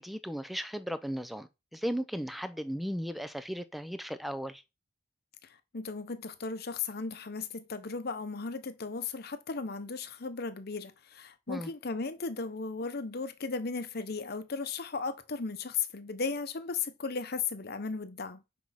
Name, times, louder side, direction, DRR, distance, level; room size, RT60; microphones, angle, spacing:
voice 1, 0.0-4.6 11.5-11.7, equal, ahead, 0.6 m, -36 dB
voice 2, 5.4-18.4, left 4 dB, 55° left, 0.8 m, -36 dB
6.2 x 4.7 x 5.7 m
head